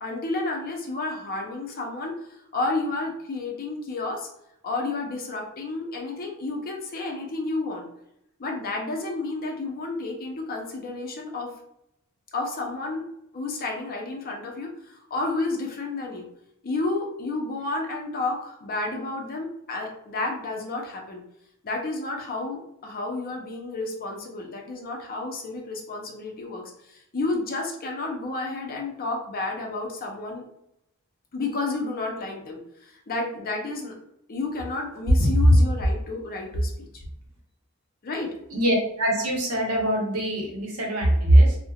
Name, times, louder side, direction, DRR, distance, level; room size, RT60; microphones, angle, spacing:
voice 1, 0.0-2.1 2.5-4.3 4.6-7.9 8.4-11.5 12.3-13.0 13.3-16.3 16.6-21.2 21.6-30.4 31.3-33.9 34.3-37.0 38.0-38.3, left 2 dB, 45° left, 1 dB, 0.5 m, -31 dB
voice 2, 35.2-35.6 38.5-41.6, equal, 80° right, 0 dB, 0.8 m, -20 dB
3.1 x 2.1 x 2.3 m, 0.79 s
head